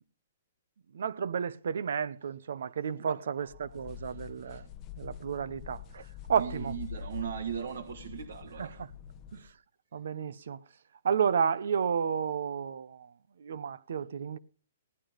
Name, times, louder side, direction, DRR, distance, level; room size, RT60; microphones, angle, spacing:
voice 1, 0.9-4.6 5.0-6.0 6.3-6.7 8.6-8.7 9.3-9.4 9.9-10.6 11.0-13.1 13.4-14.4, right 7 dB, 65° right, 0.9 m, -31 dB
voice 2, 2.9-4.7 6.3-8.8, right 8 dB, 80° right, 1.6 m, -40 dB
sound 1, 3.5-9.5, left 8 dB, 20° left, 0.7 m, -45 dB
17.5 x 11.0 x 5.1 m
hypercardioid pair, 175°, 0 cm